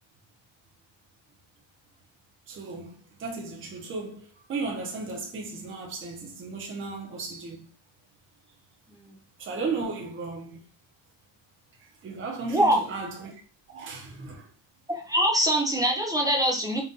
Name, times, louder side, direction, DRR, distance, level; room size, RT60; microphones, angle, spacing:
voice 1, 2.5-7.7 9.4-10.7 12.0-13.3 13.7-14.5, right 3 dB, 25° right, 0.8 m, -35 dB
voice 2, 14.9-16.8, equal, 10° right, 0.4 m, -23 dB
4.1 x 2.5 x 3.7 m
cardioid pair, 170°, 47 cm